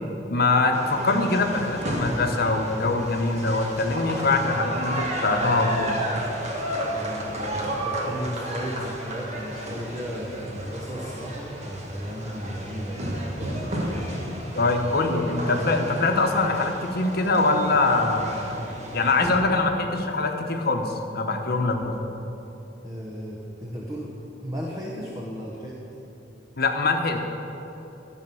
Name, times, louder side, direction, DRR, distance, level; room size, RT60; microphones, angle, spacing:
voice 1, 0.3-6.0 14.5-18.6 18.9-22.0 26.6-27.2, left 3 dB, 60° left, 4 dB, 1.0 m, -23 dB
sound 1, 0.7-19.4, right 1 dB, 40° right, 1.5 m, -32 dB
voice 2, 6.9-13.2 14.5-14.7 22.8-24.1 24.4-25.8, equal, 20° right, -3 dB, 1.0 m, -34 dB
13.0 x 6.0 x 6.9 m, 3.0 s
head